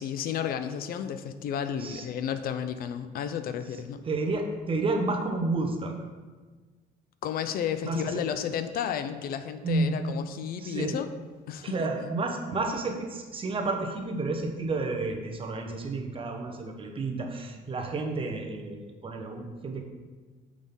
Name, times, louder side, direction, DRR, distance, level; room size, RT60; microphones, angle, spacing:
voice 1, 0.0-4.0 7.2-11.1 11.5-11.9, left 8 dB, 60° left, 10 dB, 0.4 m, -32 dB
voice 2, 4.0-5.9 7.8-8.2 9.6-10.1 10.6-11.0 11.6-19.8, right 3 dB, 30° right, 2 dB, 1.0 m, -31 dB
6.3 x 5.3 x 3.6 m, 1.4 s
cardioid pair, 110°, 17 cm